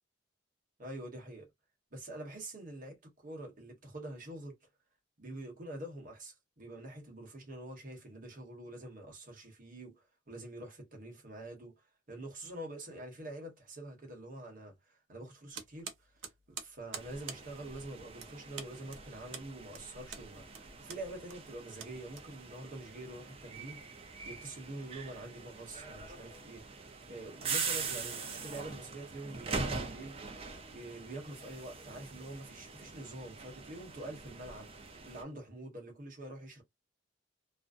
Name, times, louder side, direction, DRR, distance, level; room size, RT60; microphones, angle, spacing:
voice 1, 0.8-1.5 1.9-4.6 5.2-11.8 12.1-15.9 16.5-20.4 20.8-23.8 24.2-26.7 27.1-30.2 30.7-34.7 35.0-36.6, right 1 dB, 45° right, 1.0 m, -46 dB
sound 1, 15.5-22.7, right 6 dB, 75° right, 0.6 m, -47 dB
sound 2, 16.9-35.2, right 4 dB, 30° right, 0.5 m, -43 dB
2.5 x 2.1 x 2.5 m
head